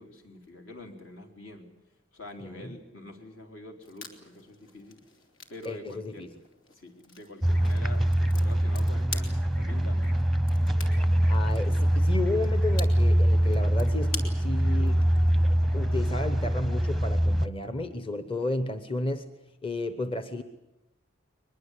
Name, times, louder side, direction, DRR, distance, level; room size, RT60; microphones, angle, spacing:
voice 1, 0.0-1.7 2.1-5.0 5.5-6.3 6.7-10.2, left 2 dB, 70° left, 4 dB, 3.7 m, -46 dB
sound 1, 3.8-15.5, left 4 dB, 85° left, 3.2 m, -46 dB
voice 2, 5.6-6.3 11.3-15.1 15.7-19.3 19.6-20.4, left 2 dB, 25° left, 10 dB, 0.9 m, -33 dB
sound 2, 7.4-17.5, equal, ahead, 0.7 m, -24 dB
sound 3, 8.6-16.9, equal, 45° left, 4.6 m, -53 dB
22.5 x 21.5 x 8.3 m, 0.97 s
head